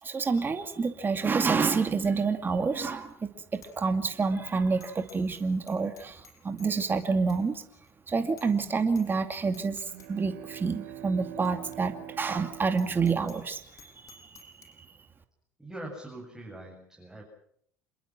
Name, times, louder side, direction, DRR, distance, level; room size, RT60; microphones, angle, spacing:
voice 1, 0.0-7.6 8.1-14.9, right 4 dB, 25° right, 7 dB, 2.4 m, -28 dB
Bicycle bell, 3.1-3.2 3.5-3.7 4.1-4.2 4.8-5.4 5.7-7.0 7.3-7.4 7.8-7.9 8.4-8.6 8.9-9.1 9.3-10.1 10.6-10.7 11.4-11.5 11.7-11.8 12.2-12.3 12.7-14.7, left 4 dB, 45° left, 6.9 m, -53 dB
sound 1, 9.8-13.8, right 12 dB, 80° right, 3.4 m, -45 dB
voice 2, 15.6-17.2, right 1 dB, 5° right, 0 dB, 7.6 m, -42 dB
28.0 x 22.0 x 6.2 m, 0.67 s
hypercardioid pair, 80°, 8 cm